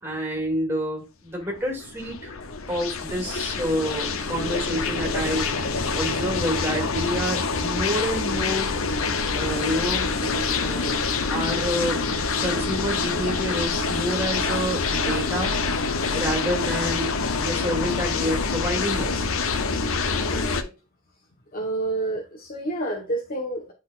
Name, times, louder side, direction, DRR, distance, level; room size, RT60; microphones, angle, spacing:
voice 1, 0.0-2.3 2.7-8.7 9.3-11.0 11.3-12.1 12.4-15.5 16.1-19.3, equal, 10° right, 2.4 m, -28 dB
sound 1, 1.5-20.6, left 4 dB, 65° left, 0.7 m, -26 dB
voice 2, 20.3-20.7 21.5-23.7, right 2 dB, 40° left, 1.1 m, -29 dB
10.0 x 4.0 x 2.4 m
head